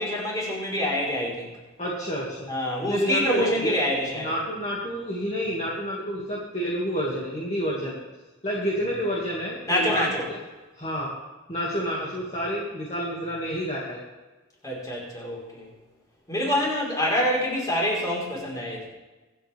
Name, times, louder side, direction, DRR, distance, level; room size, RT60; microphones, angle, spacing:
voice 1, 0.0-1.5 2.5-4.3 9.6-10.3 14.6-15.7 16.3-18.9, equal, 20° left, -3 dB, 4.4 m, -26 dB
voice 2, 1.8-2.4 2.9-3.7 4.1-8.0 8.4-10.0 10.8-11.1 11.5-14.0, equal, 35° left, -6 dB, 2.3 m, -29 dB
25.0 x 8.6 x 3.5 m, 1.2 s
head